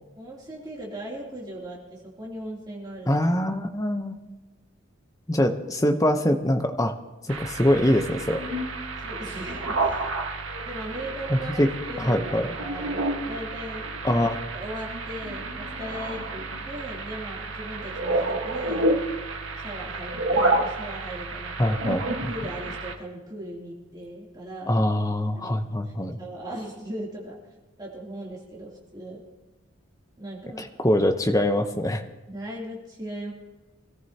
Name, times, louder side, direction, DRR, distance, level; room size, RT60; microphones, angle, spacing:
voice 1, 0.2-3.1 9.0-10.1 10.6-13.8 14.5-18.9 19.6-21.8 22.3-24.8 25.3-27.4 27.8-29.2 30.2-30.6 32.2-33.3, right 1 dB, 20° right, -4 dB, 2.9 m, -38 dB
voice 2, 3.1-4.2 5.3-6.9 7.3-8.4 11.3-11.7 12.0-12.5 14.0-14.4 21.6-22.3 24.7-26.2 30.6-32.0, left 1 dB, 15° left, 6 dB, 0.8 m, -23 dB
sound 1, 7.3-22.9, right 2 dB, 75° right, 1.5 m, -30 dB
24.5 x 14.0 x 2.9 m, 1.2 s
head